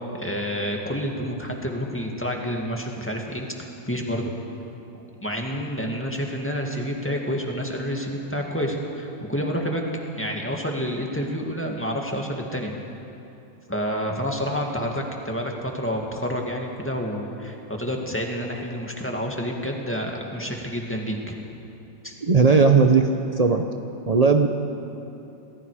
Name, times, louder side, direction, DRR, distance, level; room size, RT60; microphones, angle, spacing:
voice 1, 0.1-4.3 4.9-9.9 10.1-12.7 13.7-21.4 22.0-22.2, equal, 5° left, 0 dB, 2.0 m, -29 dB
voice 2, 22.2-23.7 24.1-24.5, right 4 dB, 50° right, 4 dB, 0.4 m, -17 dB
27.5 x 20.0 x 5.0 m, 2.8 s
omnidirectional pair, 2.0 m